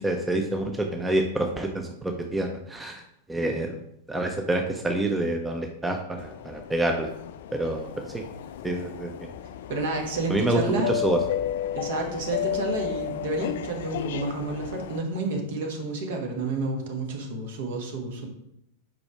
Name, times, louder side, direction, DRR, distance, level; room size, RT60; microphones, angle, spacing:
voice 1, 0.0-3.0 3.3-3.8 4.1-7.1 7.5-7.9 8.1-8.2 8.6-9.1 10.3-11.2, right 1 dB, 10° right, 3 dB, 0.6 m, -27 dB
sound 1, 6.2-15.0, left 10 dB, 55° left, 0.4 m, -33 dB
voice 2, 9.7-10.9 11.7-18.3, right 3 dB, 55° right, 2 dB, 1.3 m, -30 dB
4.9 x 4.6 x 4.7 m, 0.78 s
figure-of-eight pair, 90°, 0 cm